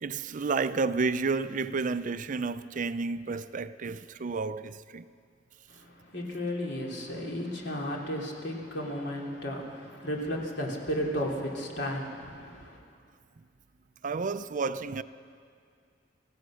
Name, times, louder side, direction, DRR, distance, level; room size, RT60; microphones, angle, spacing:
voice 1, 0.0-5.1 14.0-15.0, right 4 dB, 45° right, 0.5 m, -31 dB
voice 2, 5.7-12.8, equal, 65° left, 3.3 m, -34 dB
25.5 x 16.0 x 6.4 m
head